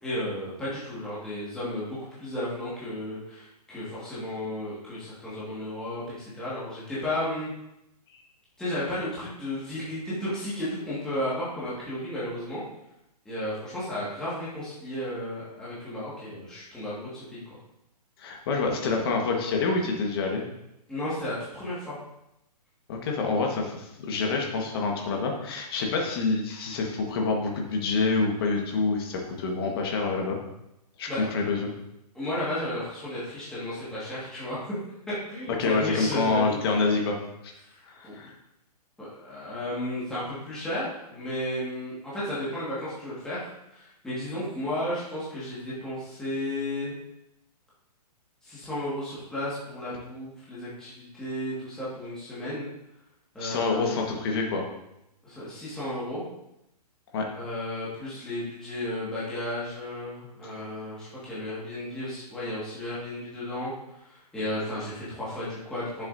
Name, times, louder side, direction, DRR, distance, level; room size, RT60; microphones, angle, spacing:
voice 1, 0.0-7.5 8.6-12.6 13.3-17.4 20.9-22.0 31.1-31.3 32.1-34.7 35.3-37.0 37.7-37.8 38.0-38.3 39.0-47.0 48.4-52.7 53.3-54.1 55.2-56.2 57.3-63.7 64.0-66.0, left 1 dB, 5° left, -11 dB, 1.8 m, -33 dB
voice 2, 18.2-20.4 22.9-30.4 31.0-31.7 35.6-37.2 37.4-37.5 37.9-38.3 53.4-54.7 57.1-57.3, left 4 dB, 35° left, 1 dB, 1.4 m, -27 dB
10.5 x 7.1 x 2.7 m, 0.85 s
hypercardioid pair, 165°, 21 cm